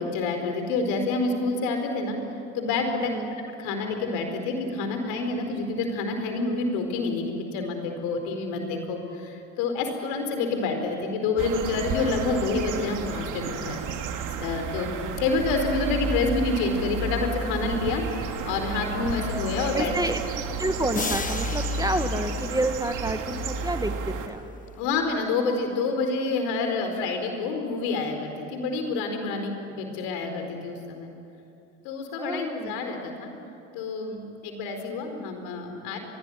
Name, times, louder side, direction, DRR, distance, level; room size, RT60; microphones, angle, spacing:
voice 1, 0.0-2.2 2.5-3.1 3.6-13.8 14.4-14.9 15.2-18.0 18.4-19.9 24.7-31.1 31.8-33.3 33.7-36.0, left 3 dB, 75° left, 5 dB, 4.5 m, -28 dB
voice 2, 3.0-3.3 19.7-20.2 20.6-24.4 32.2-32.8, right 1 dB, 10° right, 8 dB, 1.8 m, -29 dB
sound 1, 11.4-24.3, right 4 dB, 55° right, 2.7 m, -31 dB
sound 2, 20.9-23.7, left 4 dB, 20° left, 1.4 m, -35 dB
24.5 x 21.5 x 10.0 m, 2.8 s
hypercardioid pair, 70°, 36 cm